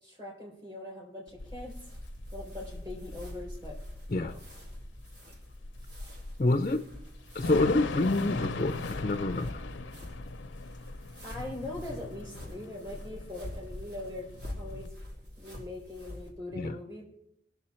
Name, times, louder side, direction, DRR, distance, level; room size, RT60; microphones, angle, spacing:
voice 1, 0.0-1.8 2.3-3.8 4.1-4.4 11.2-14.3 14.6-15.0 15.4-17.0, left 1 dB, 20° right, 4.0 m, -41 dB
sound 1, 1.3-16.3, left 1 dB, 65° right, 3.4 m, -46 dB
Thunder / Rain, 1.4-14.9, left 3 dB, 90° left, 0.6 m, -40 dB
voice 2, 6.4-6.9 7.3-9.6 16.5-16.8, left 2 dB, 40° left, 0.5 m, -27 dB
19.5 x 6.9 x 4.3 m
head